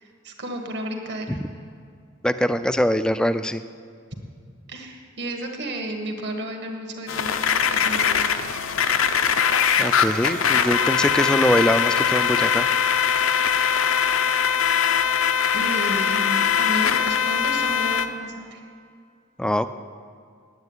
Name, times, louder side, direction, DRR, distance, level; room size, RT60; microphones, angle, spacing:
voice 1, 0.0-1.4 4.7-7.3 7.7-8.4 15.5-18.6, right 1 dB, 55° right, 3 dB, 1.6 m, -32 dB
voice 2, 2.2-3.6 9.8-12.7 19.4-19.7, equal, 5° left, 11 dB, 0.3 m, -22 dB
sound 1, 7.1-18.1, left 7 dB, 75° left, 0.6 m, -21 dB
9.6 x 8.6 x 9.6 m, 2.3 s
head